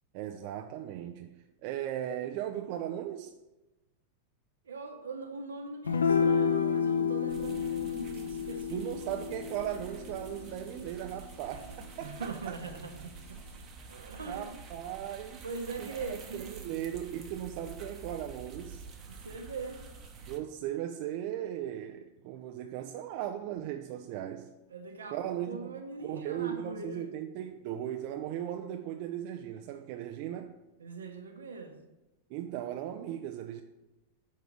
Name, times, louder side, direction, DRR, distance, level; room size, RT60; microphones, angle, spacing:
voice 1, 0.1-3.3 8.7-12.3 14.3-15.5 15.8-18.8 20.3-24.5 25.1-30.5 32.3-33.6, right 11 dB, 45° right, 0.3 m, -37 dB
voice 2, 4.6-8.8 9.1-9.3 12.0-13.4 13.9-14.6 15.4-16.8 19.1-19.8 24.7-27.1 30.8-31.8, right 4 dB, 70° right, 0.7 m, -41 dB
sound 1, 5.9-12.4, left 6 dB, 75° left, 0.5 m, -31 dB
sound 2, 7.3-20.4, right 4 dB, 30° right, 0.8 m, -48 dB
5.8 x 3.7 x 5.9 m
figure-of-eight pair, 90°, 0 cm